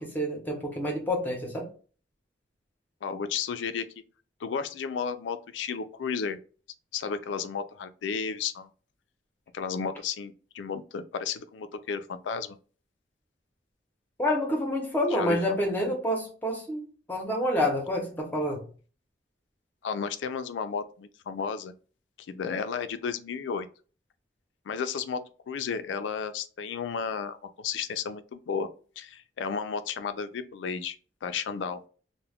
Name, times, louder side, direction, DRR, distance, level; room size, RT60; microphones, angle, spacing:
voice 1, 0.0-1.7 14.2-18.7, left 1 dB, 10° left, 0.7 m, -28 dB
voice 2, 3.0-3.9 4.4-6.4 6.9-8.7 9.5-12.6 15.1-15.4 19.8-21.7 22.3-23.7 24.7-28.7 29.0-31.0 31.2-31.8, left 6 dB, 85° left, 0.4 m, -33 dB
2.2 x 2.1 x 3.4 m
head